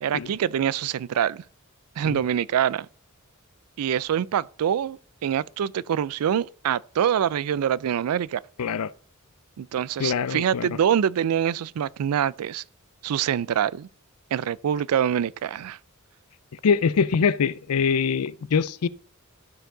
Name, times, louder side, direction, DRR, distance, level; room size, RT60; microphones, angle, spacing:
voice 1, 0.0-1.4 2.0-2.9 3.8-8.4 9.6-12.6 13.0-13.9 14.3-15.8, right 9 dB, 85° right, 0.3 m, -25 dB
voice 2, 8.6-8.9 10.0-10.7 16.6-18.9, left 6 dB, 85° left, 0.5 m, -23 dB
12.5 x 4.5 x 3.8 m
head